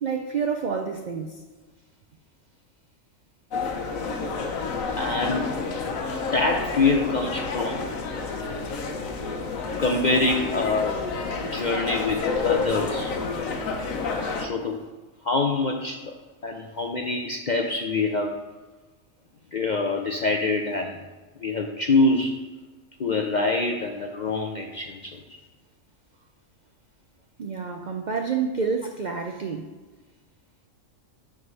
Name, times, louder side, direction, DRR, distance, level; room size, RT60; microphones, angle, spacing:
voice 1, 0.0-1.4 27.4-29.7, right 5 dB, 70° right, 4 dB, 0.4 m, -28 dB
sound 1, 3.5-14.5, left 4 dB, 90° left, 1.2 m, -29 dB
voice 2, 5.0-5.5 6.3-7.8 9.8-11.0 11.5-13.1 14.4-14.8 15.2-16.1 16.4-18.4 19.5-21.0 21.4-22.4 23.0-25.4, left 3 dB, 60° left, 3 dB, 0.4 m, -25 dB
7.8 x 3.8 x 5.4 m, 1.3 s
omnidirectional pair, 1.4 m